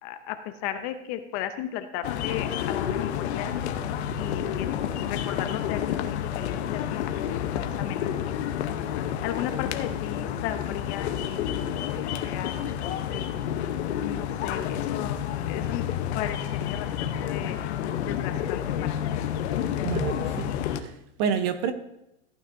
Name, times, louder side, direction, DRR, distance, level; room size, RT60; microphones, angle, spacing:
voice 1, 0.0-3.5 4.1-4.7 5.1-5.9 6.3-8.4 9.2-12.5 12.8-13.2 14.0-15.2 15.5-15.8 16.1-17.6 18.0-19.1, left 11 dB, 35° left, 0.6 m, -36 dB
sound 1, 2.0-20.8, left 9 dB, 60° left, 0.9 m, -29 dB
voice 2, 19.8-21.7, right 7 dB, 40° right, 0.8 m, -29 dB
15.0 x 9.2 x 2.6 m
supercardioid pair, 160°, 36 cm